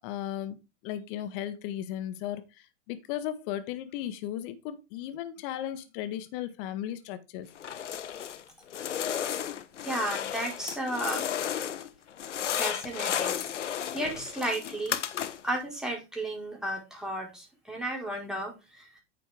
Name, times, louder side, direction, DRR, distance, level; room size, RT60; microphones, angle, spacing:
voice 1, 0.0-0.6 0.8-7.5, left 11 dB, 50° left, 1.5 m, -36 dB
sound 1, 7.6-8.4 8.7-11.9 12.2-15.6, left 9 dB, 80° left, 1.0 m, -33 dB
voice 2, 9.8-11.3 12.5-13.3 13.7-15.0 15.4-19.0, right 1 dB, ahead, 4.5 m, -33 dB
9.6 x 6.8 x 3.6 m
hypercardioid pair, 100°, 36 cm